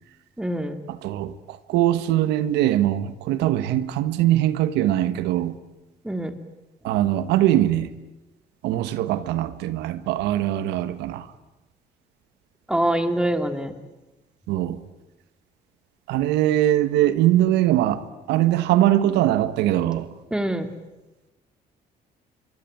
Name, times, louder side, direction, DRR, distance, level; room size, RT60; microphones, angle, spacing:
voice 1, 0.4-0.8 6.0-6.3 12.7-13.7 20.3-20.7, right 1 dB, 5° right, 2.7 m, -24 dB
voice 2, 0.9-5.6 6.8-7.9 8.6-11.3 14.5-14.8 16.1-20.1, right 13 dB, 90° right, 1.5 m, -22 dB
26.5 x 24.0 x 9.5 m
cardioid pair, 110°, 17 cm